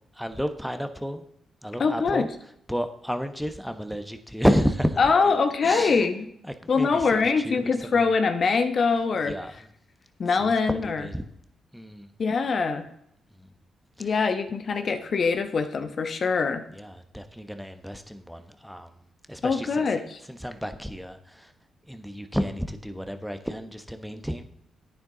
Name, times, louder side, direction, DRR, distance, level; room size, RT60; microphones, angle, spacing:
voice 1, 0.2-1.2 1.6-2.3 2.7-5.0 5.6-6.0 6.6-7.0 7.4-8.0 9.3-9.5 10.4-10.5 10.8-11.2 11.7-12.1 14.0-14.1 16.8-18.9 19.3-19.7 20.3-21.5 21.9-24.4, equal, ahead, 8 dB, 1.1 m, -30 dB
voice 2, 1.8-2.3 5.0-6.3 6.7-9.4 10.2-11.1 12.2-12.9 14.0-16.6 19.4-20.2, left 4 dB, 55° left, 8 dB, 1.1 m, -23 dB
10.5 x 9.3 x 4.0 m, 0.74 s
supercardioid pair, 60°, 0 cm